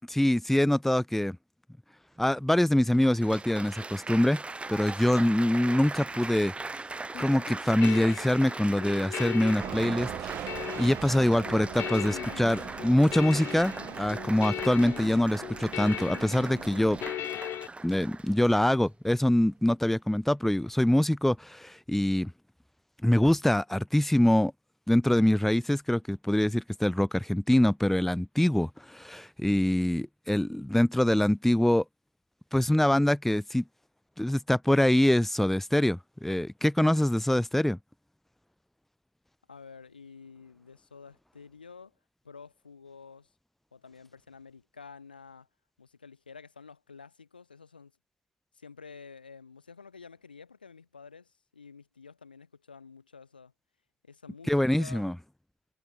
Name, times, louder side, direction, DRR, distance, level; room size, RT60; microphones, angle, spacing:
voice 1, 0.1-1.4 2.2-4.4 4.7-6.5 7.2-10.5 10.8-17.0 17.8-22.3 23.0-24.5 24.9-31.8 32.5-33.6 34.2-37.8 54.5-55.1, left 1 dB, 5° left, 0.9 m, -24 dB
Applause, 2.2-2.3 2.9-18.9 19.6-19.9, right 3 dB, 25° right, 4.8 m, -40 dB
sound 1, 7.1-17.7, left 13 dB, 60° left, 2.3 m, -39 dB
sound 2, 9.6-17.1, right 12 dB, 60° right, 5.2 m, -41 dB
voice 2, 39.5-41.9 42.2-43.3 43.7-45.5 45.8-47.9 48.5-53.5 54.0-55.1, left 5 dB, 85° left, 4.1 m, -50 dB
figure-of-eight pair, 40°, 5 cm